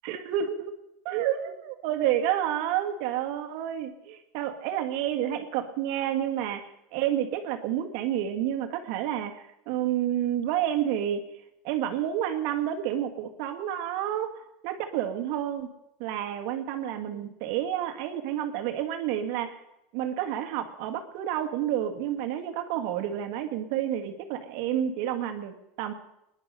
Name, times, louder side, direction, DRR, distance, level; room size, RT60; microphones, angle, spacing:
voice 1, 0.0-0.7 1.0-11.2 11.6-15.7 16.0-19.6 19.9-25.9, right 10 dB, 55° right, 6 dB, 1.7 m, -30 dB
24.0 x 10.5 x 5.5 m, 0.86 s
supercardioid pair, 175°, 0 cm